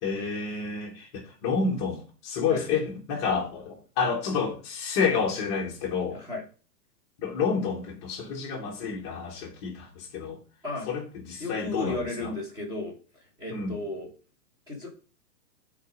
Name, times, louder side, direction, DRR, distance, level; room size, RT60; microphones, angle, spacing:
voice 1, 0.0-6.2 7.2-10.4 10.9-12.3 13.5-13.8, left 5 dB, 20° left, 0.9 m, -29 dB
voice 2, 11.4-12.9 13.4-14.1 14.7-14.9, left 2 dB, 10° right, 1.4 m, -34 dB
9.2 x 4.1 x 4.7 m
supercardioid pair, 175°, 48 cm